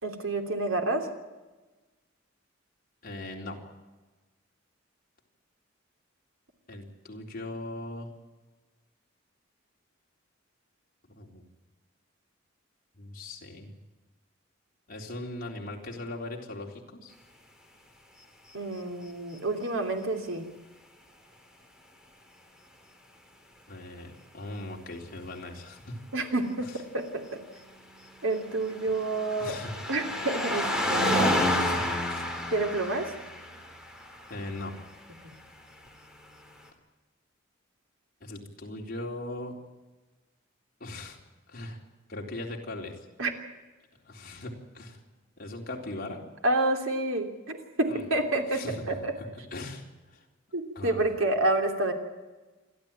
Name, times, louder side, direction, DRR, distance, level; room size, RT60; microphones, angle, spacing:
voice 1, 0.0-1.1 18.5-20.4 26.1-27.4 28.2-29.6 29.9-31.4 32.5-33.1 35.2-35.3 43.2-43.3 46.4-49.1 50.5-51.9, right 2 dB, 85° right, 4 dB, 3.1 m, -29 dB
voice 2, 3.0-3.6 6.7-8.1 11.1-11.4 12.9-13.7 14.9-17.1 23.7-26.0 29.4-29.7 31.4-32.2 34.3-34.8 38.2-39.6 40.8-41.2 41.5-41.8 42.1-43.0 44.1-45.0 45.4-46.2 47.9-48.0 48.5-50.3 50.8-51.0, left 2 dB, 45° left, 0 dB, 3.8 m, -39 dB
sound 1, 28.2-34.9 35.9-36.0, left 1 dB, 5° right, 3.0 m, -30 dB
28.0 x 12.0 x 8.9 m, 1.2 s
head